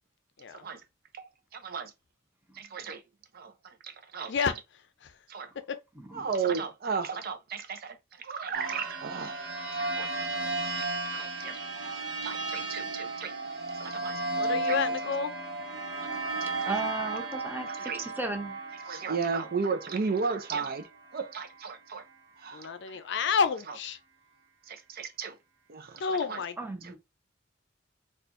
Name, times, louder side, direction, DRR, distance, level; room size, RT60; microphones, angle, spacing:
voice 1, 1.1-1.9 2.7-3.0 4.1-4.3 5.3-5.5 6.1-9.4 9.8-10.5 10.8-13.3 13.8-14.8 16.0-16.1 16.4-16.7 17.3-18.0 18.9-20.9 21.1-22.0 22.4-22.7 24.7-25.3 25.7-26.4, right 5 dB, 50° right, 0.5 m, -35 dB
voice 2, 6.0-6.3 16.7-18.6 26.6-27.0, right 1 dB, 10° right, 0.7 m, -36 dB
sound 1, 8.5-21.7, right 2 dB, 90° right, 1.1 m, -35 dB
voice 3, 14.4-15.3 22.5-24.0 26.0-26.6, left 6 dB, 65° left, 0.5 m, -29 dB
4.3 x 2.4 x 2.5 m
head